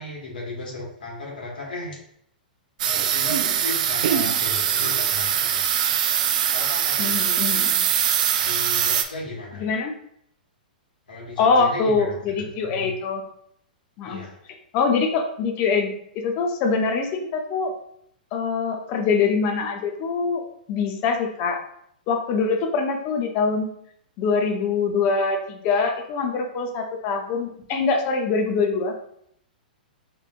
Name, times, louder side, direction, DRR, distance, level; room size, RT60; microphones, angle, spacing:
voice 1, 0.0-2.0 2.8-5.8 6.5-7.2 8.4-9.7 11.1-12.9 14.0-14.4, left 2 dB, 80° left, -3 dB, 1.4 m, -35 dB
sound 1, 2.8-9.0, right 9 dB, 55° right, 0.3 m, -22 dB
voice 2, 7.0-7.9 9.6-9.9 11.4-13.2 14.0-14.2 14.7-17.7 18.3-21.6 22.1-23.7 24.2-28.9, left 4 dB, 40° left, 4 dB, 0.6 m, -24 dB
4.5 x 2.5 x 2.4 m, 0.70 s
figure-of-eight pair, 110°, 5 cm